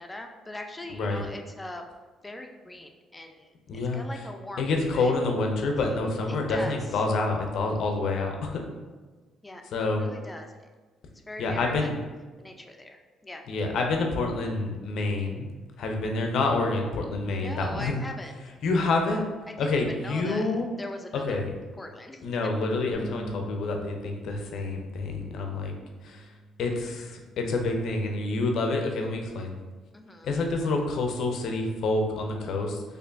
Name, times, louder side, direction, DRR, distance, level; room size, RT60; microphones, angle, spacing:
voice 1, 0.0-2.0 2.2-5.1 6.3-7.0 9.4-9.6 10.0-10.7 11.1-11.9 12.4-13.4 17.3-18.5 19.5-21.4 21.8-22.5 29.9-30.4, left 1 dB, 20° left, 4 dB, 0.5 m, -41 dB
voice 2, 0.9-1.2 3.7-4.1 4.6-8.6 9.7-10.1 11.4-11.9 13.5-15.5 15.8-18.0 18.6-19.2 19.6-20.7 21.1-21.5 22.2-25.7 26.0-26.2 26.6-29.6 30.2-32.8, left 3 dB, 70° left, 2 dB, 0.6 m, -27 dB
Bass guitar, 22.9-29.2, right 1 dB, 35° right, 0.8 m, -46 dB
4.5 x 2.6 x 2.5 m, 1.3 s
supercardioid pair, 60°, 0 cm